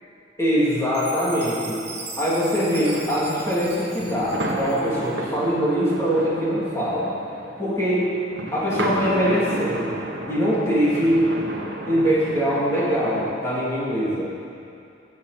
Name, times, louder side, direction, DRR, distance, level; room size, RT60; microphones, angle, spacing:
voice 1, 0.4-1.9 2.2-7.1 7.6-8.1 8.5-10.0 10.3-11.3 11.9-14.3, equal, 15° left, -9 dB, 2.8 m, -22 dB
Chime, 0.9-5.2, right 4 dB, 35° right, 1.4 m, -38 dB
sound 1, 2.5-13.2, right 1 dB, 80° right, 1.3 m, -33 dB
15.0 x 7.9 x 4.2 m, 2.6 s
head